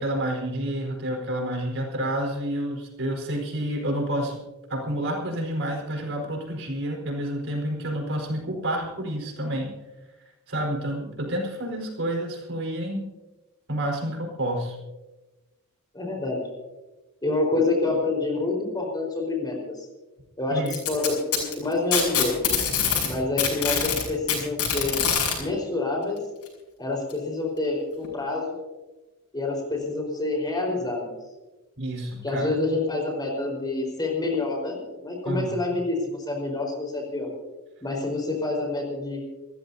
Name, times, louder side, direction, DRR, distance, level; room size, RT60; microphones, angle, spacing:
voice 1, 0.0-4.4 4.7-9.7 10.5-13.1 13.7-14.8 20.5-20.8 31.8-32.5 35.2-35.5, right 1 dB, 60° right, 1 dB, 4.7 m, -29 dB
voice 2, 15.9-16.4 17.2-19.9 20.4-22.3 23.0-25.0 25.4-26.2 26.8-28.6 29.3-31.2 32.2-37.3 37.8-39.2, left 2 dB, 20° left, 1 dB, 4.6 m, -27 dB
Packing tape duct tape, 20.7-23.1 23.4-25.3 26.5-26.6 27.1-27.2 28.0-28.1, left 7 dB, 85° left, 7.1 m, -24 dB
28.5 x 14.5 x 2.8 m, 1.1 s
head